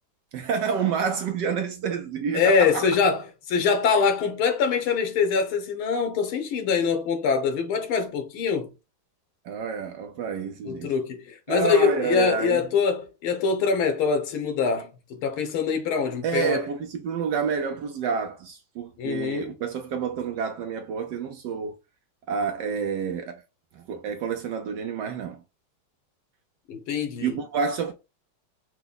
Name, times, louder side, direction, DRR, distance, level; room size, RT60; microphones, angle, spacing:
voice 1, 0.3-2.9 9.4-10.9 11.5-12.7 16.2-21.8 22.3-23.4 23.7-25.4 27.2-27.9, right 6 dB, 75° right, 1.1 m, -28 dB
voice 2, 2.3-8.7 10.7-16.6 19.0-19.5 26.7-27.4, left 5 dB, 90° left, 1.9 m, -24 dB
5.8 x 2.2 x 3.9 m
omnidirectional pair, 2.3 m